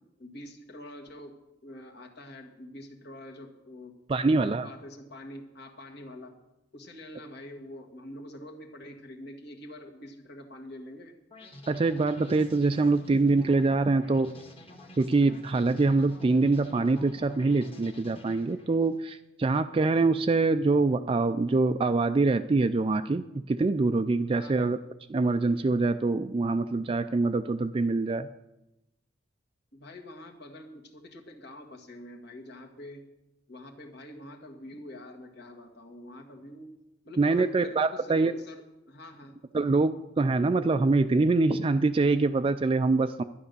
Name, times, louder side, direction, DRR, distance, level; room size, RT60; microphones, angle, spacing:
voice 1, 0.2-6.4 6.7-11.2 24.4-24.7 29.7-33.1 33.5-36.7 37.0-39.7, left 1 dB, 60° left, 3 dB, 1.8 m, -46 dB
voice 2, 4.1-4.7 11.7-14.3 15.0-24.8 25.1-28.3 37.2-38.3 39.5-43.2, right 3 dB, 30° right, 9 dB, 0.3 m, -24 dB
sound 1, 11.3-19.0, left 1 dB, 30° left, 1.7 m, -49 dB
11.0 x 10.5 x 6.8 m, 0.93 s
head